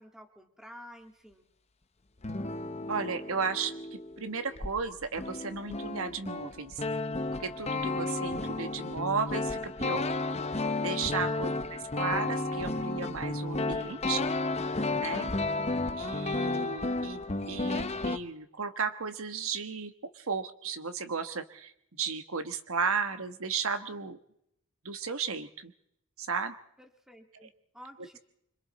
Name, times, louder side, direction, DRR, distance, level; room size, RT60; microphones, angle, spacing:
voice 1, 0.0-1.5 11.3-11.7 15.2-15.8 26.8-28.2, equal, ahead, 5 dB, 1.9 m, -52 dB
sound 1, 2.2-4.8 5.0-18.2, left 2 dB, 30° left, 0.9 m, -33 dB
voice 2, 2.9-6.8 7.4-10.1 10.8-14.3 14.9-15.3 16.0-24.2 24.8-25.7 26.2-26.5 27.4-27.5, right 5 dB, 65° right, 9 dB, 1.2 m, -34 dB
26.0 x 25.0 x 4.2 m, 0.74 s
head